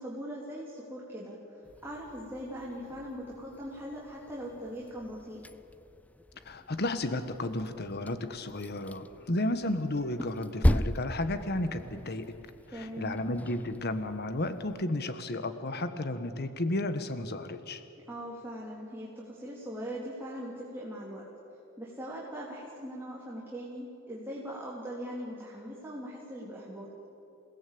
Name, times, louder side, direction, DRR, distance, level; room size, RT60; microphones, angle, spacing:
voice 1, 0.0-5.4 12.7-13.2 18.1-21.2 21.8-26.9, equal, 10° right, -5 dB, 3.6 m, -40 dB
sound 1, 1.6-14.8, left 1 dB, 5° left, 0.5 m, -37 dB
voice 2, 6.4-12.3 12.7-17.8, left 1 dB, 50° left, 10 dB, 1.3 m, -33 dB
28.5 x 18.5 x 8.7 m, 2.8 s
head